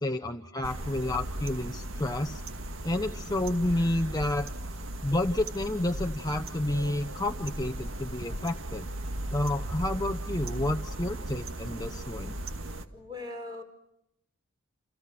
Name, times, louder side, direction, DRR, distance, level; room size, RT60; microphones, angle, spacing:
voice 1, 0.0-2.4 2.8-4.5 5.0-8.9 9.3-12.3, left 1 dB, 15° left, 5 dB, 0.9 m, -30 dB
sound 1, 0.6-12.9, right 1 dB, 65° right, 2.1 m, -37 dB
voice 2, 12.9-13.6, left 2 dB, 20° right, 5 dB, 4.8 m, -39 dB
29.5 x 28.5 x 6.1 m, 0.80 s
head